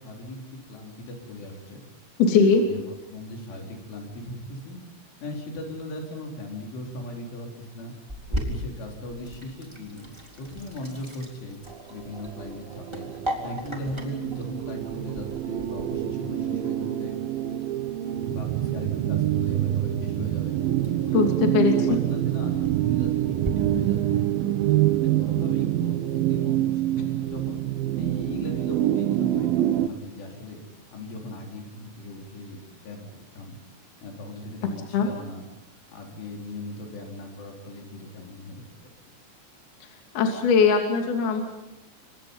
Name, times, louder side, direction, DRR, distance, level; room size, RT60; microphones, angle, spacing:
voice 1, 0.0-1.9 2.4-2.8 3.1-4.8 5.2-7.9 8.3-11.6 11.9-13.1 13.4-17.2 18.3-20.6 21.1-24.3 25.0-27.6 28.0-30.6 30.9-33.1 33.3-33.6 34.0-35.4 35.9-38.9, left 1 dB, 80° left, 0 dB, 6.7 m, -38 dB
voice 2, 2.2-2.6 21.1-21.7 34.9-35.1 40.1-41.4, left 5 dB, 55° left, 2 dB, 4.5 m, -20 dB
Sink (filling or washing), 8.1-23.5, equal, 5° right, 2.9 m, -39 dB
sound 1, 12.0-29.9, right 13 dB, 75° right, 2.2 m, -26 dB
30.0 x 25.5 x 5.6 m, 0.93 s
omnidirectional pair, 5.4 m